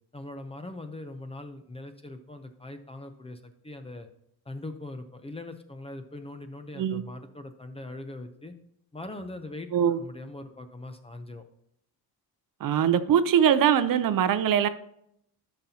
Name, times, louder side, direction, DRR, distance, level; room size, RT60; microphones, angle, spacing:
voice 1, 0.1-4.1 4.5-8.5 8.9-11.4, left 2 dB, 15° left, 0.6 m, -41 dB
voice 2, 9.7-10.0 12.6-14.7, right 8 dB, 55° right, 0.6 m, -22 dB
11.5 x 5.9 x 2.8 m
cardioid pair, 145°, 39 cm